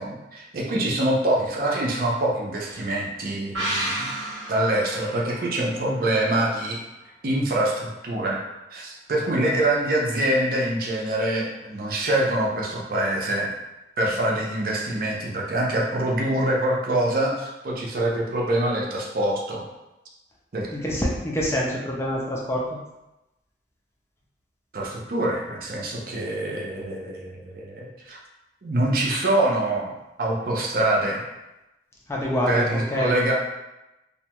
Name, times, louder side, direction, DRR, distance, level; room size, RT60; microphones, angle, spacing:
voice 1, 0.0-4.1 4.5-6.8 7.2-8.4 8.7-13.5 14.0-19.6 20.5-20.7 24.7-28.2 28.6-31.2 32.5-33.3, right 1 dB, 55° right, -2 dB, 0.5 m, -25 dB
sound 1, 3.5-7.0 7.3-7.4, right 1 dB, 90° right, 1.0 m, -32 dB
voice 2, 20.7-22.6 32.1-33.1, equal, 15° left, -3 dB, 0.4 m, -26 dB
2.7 x 2.2 x 2.9 m, 0.98 s
head